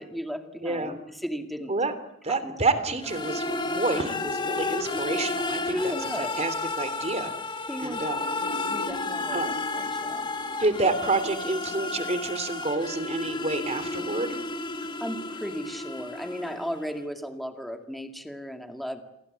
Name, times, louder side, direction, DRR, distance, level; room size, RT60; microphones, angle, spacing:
voice 1, 0.0-1.7 2.3-3.4 5.7-6.4 7.7-8.1 8.4-10.4 14.8-19.0, equal, ahead, 6 dB, 2.1 m, -36 dB
voice 2, 0.6-1.0 1.7-1.9 2.2-7.3 7.8-8.2 9.3-9.5 10.5-14.5, right 3 dB, 30° right, 11 dB, 3.0 m, -29 dB
sound 1, 3.0-16.9, left 3 dB, 25° left, 2.2 m, -32 dB
sound 2, 8.2-12.9, left 1 dB, 75° left, 1.7 m, -41 dB
29.5 x 23.5 x 8.2 m, 0.85 s
head